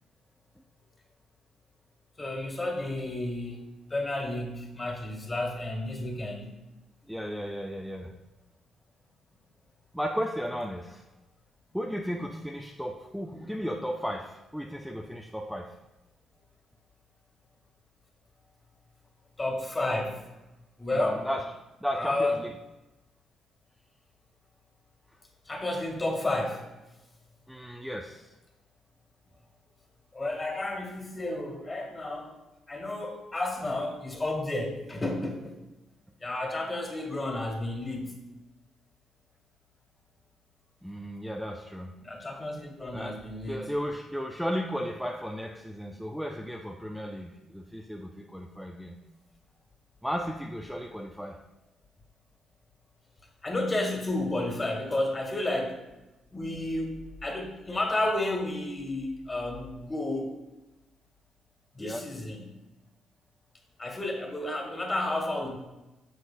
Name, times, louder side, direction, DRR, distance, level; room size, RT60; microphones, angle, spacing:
voice 1, 2.2-3.6 3.9-6.5 19.4-20.2 20.8-21.3 22.0-22.4 25.5-26.6 30.1-32.3 32.7-35.5 36.2-38.2 42.0-43.6 53.4-55.8 56.3-60.3 61.8-62.5 63.8-65.6, left 2 dB, 25° left, 2 dB, 1.8 m, -31 dB
voice 2, 7.1-8.1 9.9-11.0 11.7-15.7 20.9-21.5 21.8-22.5 27.5-28.3 40.8-41.9 42.9-49.0 50.0-51.4 61.8-62.0, equal, ahead, 1 dB, 0.5 m, -35 dB
9.8 x 6.3 x 2.3 m, 1.0 s
cardioid pair, 90°, 0 cm